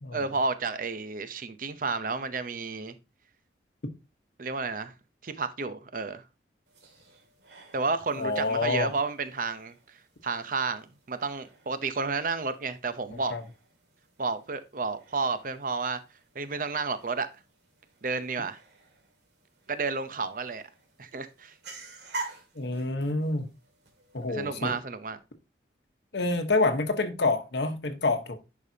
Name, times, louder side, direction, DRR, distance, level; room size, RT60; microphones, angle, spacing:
voice 1, 0.1-3.0 4.4-4.9 5.2-6.2 7.7-9.7 10.2-13.3 14.2-16.0 16.3-17.3 18.0-18.6 19.7-20.6 21.0-21.5 24.3-25.2, right 4 dB, 45° right, 0.7 m, -31 dB
sound 1, 6.7-24.8, right 3 dB, 65° right, 2.2 m, -48 dB
voice 2, 8.2-8.9 13.3-13.4 22.5-23.5 24.1-24.7 26.1-28.4, left 3 dB, 70° left, 1.1 m, -27 dB
10.5 x 5.1 x 2.8 m
head